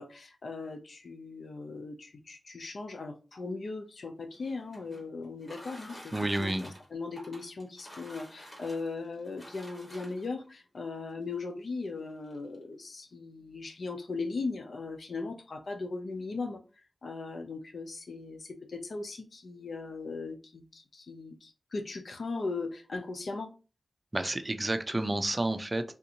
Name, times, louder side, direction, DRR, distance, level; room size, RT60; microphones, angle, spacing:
voice 1, 0.0-16.6 17.0-23.5, left 3 dB, 75° left, 5 dB, 0.6 m, -38 dB
sound 1, 4.2-10.4 11.3-11.4 11.8-11.9 12.2-12.6, equal, 30° left, 1.6 m, -50 dB
voice 2, 6.1-6.6 24.1-26.0, right 1 dB, 30° right, 9 dB, 0.4 m, -30 dB
3.6 x 2.5 x 2.8 m, 0.33 s
wide cardioid pair, 65°, 0 cm